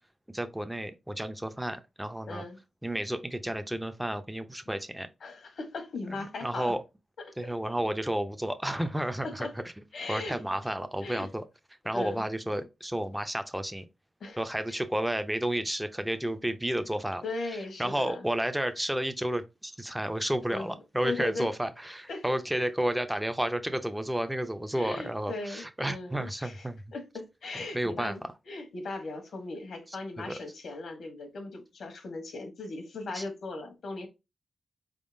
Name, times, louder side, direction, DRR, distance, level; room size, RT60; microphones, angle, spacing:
voice 1, 0.3-2.4 2.8-5.1 6.1-6.8 7.4-9.5 9.8-11.4 11.8-13.9 14.4-17.2 17.8-26.8 27.7-28.1 30.2-30.4 33.1-33.2, right 1 dB, 5° right, 0.5 m, -31 dB
voice 2, 2.3-2.6 5.2-6.7 9.2-9.5 9.9-10.4 11.0-11.3 11.9-12.2 14.2-14.4 14.7-14.8 16.8-16.9 17.2-18.2 20.5-20.7 21.0-21.5 22.1-22.2 24.7-26.6 26.9-28.2 28.4-34.1, left 3 dB, 75° left, 1.2 m, -38 dB
4.3 x 3.6 x 2.6 m
cardioid pair, 90°, 0 cm